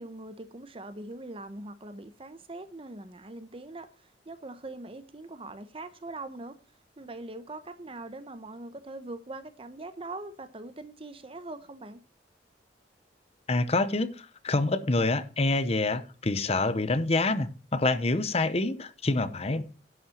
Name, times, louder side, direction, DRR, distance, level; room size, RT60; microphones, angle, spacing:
voice 1, 0.0-6.6 7.0-12.0, right 2 dB, 30° right, 0.9 m, -42 dB
voice 2, 13.5-19.6, left 2 dB, 35° left, 0.9 m, -27 dB
11.0 x 5.7 x 7.2 m
head